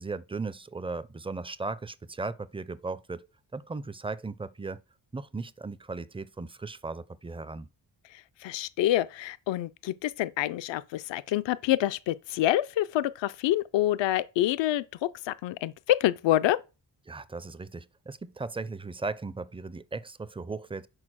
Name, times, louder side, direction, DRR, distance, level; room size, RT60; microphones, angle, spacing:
voice 1, 0.0-3.3 3.5-4.8 5.1-7.7 17.1-20.9, right 3 dB, 15° right, 0.4 m, -37 dB
voice 2, 8.1-14.8 15.2-16.6, left 14 dB, 75° left, 0.5 m, -27 dB
6.4 x 4.6 x 6.1 m
cardioid pair, 90°, 44 cm